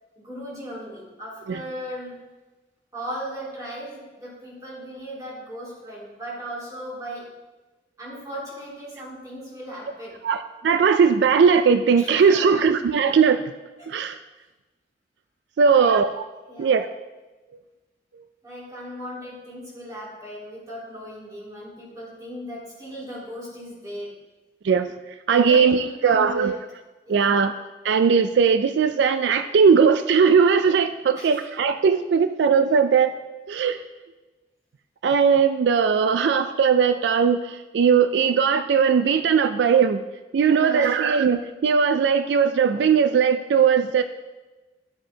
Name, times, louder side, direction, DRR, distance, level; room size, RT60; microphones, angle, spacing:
voice 1, 0.2-2.3 2.9-7.4 8.0-10.3 12.0-12.6 13.8-13.9 15.6-16.0 16.5-16.7 18.4-24.3 25.3-26.5 27.1-27.4 31.2-31.4 40.5-40.9, equal, 20° right, -6 dB, 2.6 m, -37 dB
voice 2, 10.2-13.4 13.9-14.2 15.6-16.2 16.6-16.9 24.6-24.9 25.3-26.6 27.1-27.5 27.8-33.1 33.5-33.8 35.0-40.0 40.3-44.0, right 6 dB, 80° right, 9 dB, 0.3 m, -19 dB
11.0 x 7.5 x 2.8 m, 1.2 s
head